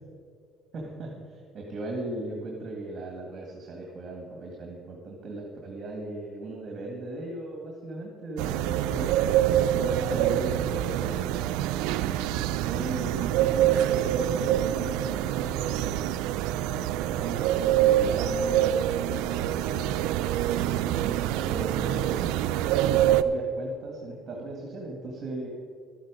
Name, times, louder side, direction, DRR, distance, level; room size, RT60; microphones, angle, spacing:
voice 1, 0.7-9.1 9.7-11.5 11.8-16.1 16.6-18.8 19.4-20.2 20.5-22.3 22.8-25.5, right 2 dB, 45° right, -1 dB, 2.2 m, -38 dB
sound 1, 8.4-23.2, right 12 dB, 90° right, 0.4 m, -25 dB
12.5 x 10.0 x 5.3 m, 2.1 s
cardioid pair, 100°, 0 cm